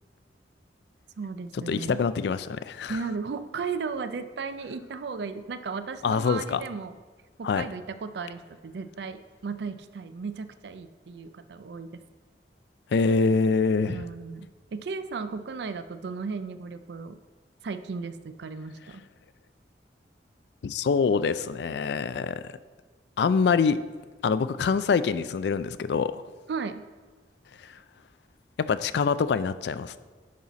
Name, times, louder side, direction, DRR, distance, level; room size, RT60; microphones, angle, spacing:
voice 1, 1.2-2.0 2.9-7.0 7.4-12.0 13.9-17.2 17.6-19.0 26.5-26.8, right 5 dB, 70° right, 11 dB, 0.4 m, -35 dB
voice 2, 1.7-3.0 6.0-6.6 7.4-7.6 12.9-14.0 20.6-22.5 23.2-23.8 24.2-26.2 28.6-30.0, left 5 dB, 70° left, 14 dB, 0.3 m, -25 dB
10.5 x 4.1 x 4.1 m, 1.4 s
head